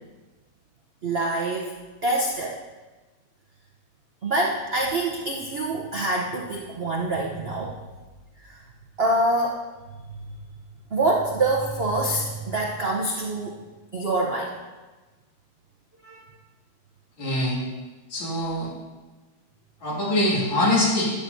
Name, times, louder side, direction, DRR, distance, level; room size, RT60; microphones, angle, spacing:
voice 1, 1.0-1.7 2.0-2.6 4.2-7.7 8.4-8.6 9.0-9.6 10.1-10.4 10.9-13.6 13.9-14.5 16.0-16.2, right 2 dB, 80° right, -1 dB, 0.5 m, -25 dB
voice 2, 17.2-17.6 18.1-18.7 19.8-21.1, left 1 dB, 70° left, -6 dB, 3.2 m, -23 dB
12.0 x 8.3 x 2.7 m, 1.2 s
omnidirectional pair, 2.2 m